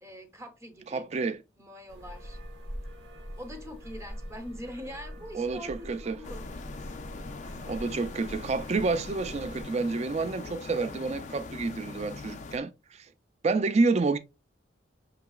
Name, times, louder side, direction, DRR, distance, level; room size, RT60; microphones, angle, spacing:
voice 1, 0.0-1.1 1.6-2.4 3.4-6.8, equal, 15° right, 0.7 m, -43 dB
voice 2, 0.9-1.4 5.3-6.2 7.7-13.0 13.4-14.2, right 3 dB, 35° right, 0.4 m, -29 dB
sound 1, 1.9-9.6, equal, 80° right, 1.0 m, -43 dB
sound 2, 6.2-12.6, left 3 dB, 40° left, 0.4 m, -42 dB
6.6 x 2.9 x 2.3 m
head